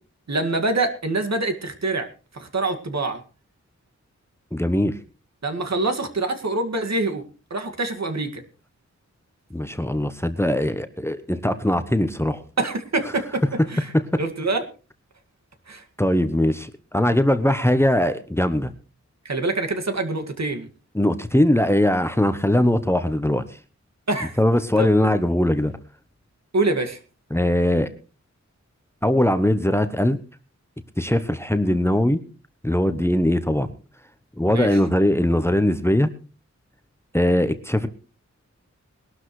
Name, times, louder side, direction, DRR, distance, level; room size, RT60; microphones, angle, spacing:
voice 1, 0.3-2.1 2.3-3.2 5.4-7.2 7.5-8.4 12.6-13.4 13.7-13.9 14.2-14.6 15.7-15.8 19.3-20.7 24.1-24.4 24.8-24.9 26.5-27.0 34.5-34.7, right 2 dB, 65° right, 5 dB, 2.1 m, -25 dB
voice 2, 4.5-5.0 9.5-12.4 13.9-14.0 16.0-18.7 20.9-23.4 24.4-25.7 27.3-27.9 29.0-30.2 31.0-32.2 32.6-33.7 34.4-36.1 37.1-37.9, left 1 dB, 10° left, 11 dB, 0.9 m, -20 dB
21.0 x 12.0 x 3.2 m, 0.34 s
wide cardioid pair, 100°, 29 cm